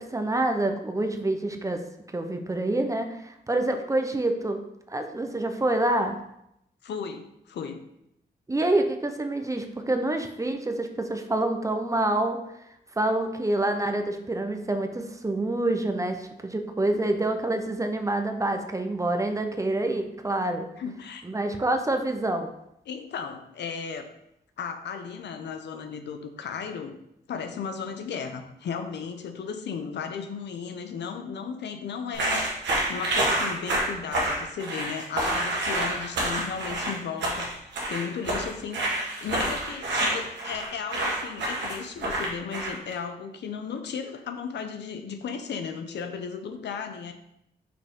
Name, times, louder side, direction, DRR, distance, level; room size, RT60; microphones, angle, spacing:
voice 1, 0.0-1.8 2.1-4.6 4.9-6.2 8.5-12.4 13.0-20.7 21.2-22.5, right 2 dB, 20° right, 5 dB, 0.7 m, -27 dB
voice 2, 6.8-7.8 20.8-21.2 22.9-24.1 24.6-26.9 27.3-47.1, left 6 dB, 80° left, 7 dB, 0.7 m, -35 dB
sound 1, 32.1-42.9, right 1 dB, 85° right, 1.4 m, -28 dB
5.5 x 4.6 x 3.6 m, 0.80 s
cardioid pair, 85°, 18 cm